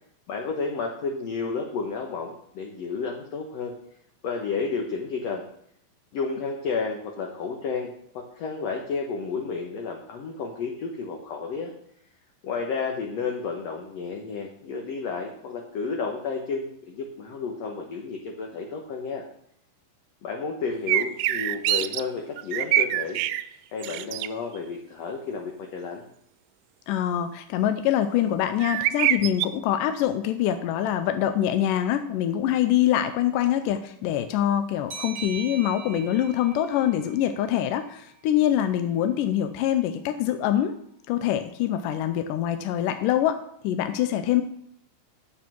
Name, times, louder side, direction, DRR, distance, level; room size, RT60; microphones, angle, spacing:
voice 1, 0.3-3.7 4.2-5.4 6.1-11.7 12.4-19.2 20.2-23.2 23.7-26.0, left 4 dB, 60° left, 1 dB, 1.9 m, -31 dB
sound 1, 20.9-22.0 22.4-23.4 23.8-24.3 28.6-29.5, right 14 dB, 80° right, 2.0 m, -24 dB
voice 2, 26.9-40.8 41.1-44.4, left 11 dB, 80° left, 8 dB, 2.2 m, -24 dB
sound 2, 34.9-38.2, right 6 dB, 35° right, 2.0 m, -41 dB
8.6 x 7.1 x 6.0 m, 0.71 s
omnidirectional pair, 3.9 m